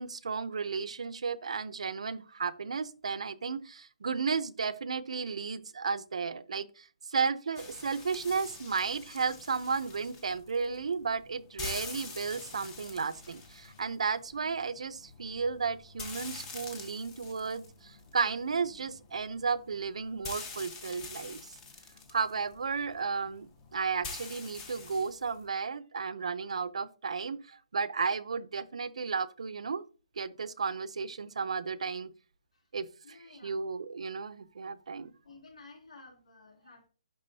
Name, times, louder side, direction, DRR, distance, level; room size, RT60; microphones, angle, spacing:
voice 1, 0.0-21.6 22.1-29.8 30.2-32.1 32.7-33.2 33.4-35.1, right 5 dB, 70° right, 0.6 m, -33 dB
sound 1, 7.6-25.4, left 4 dB, 10° left, 0.5 m, -46 dB
voice 2, 33.0-33.6 35.2-36.9, left 3 dB, 90° left, 3.0 m, -53 dB
11.0 x 3.7 x 2.7 m
hypercardioid pair, 180°, 4 cm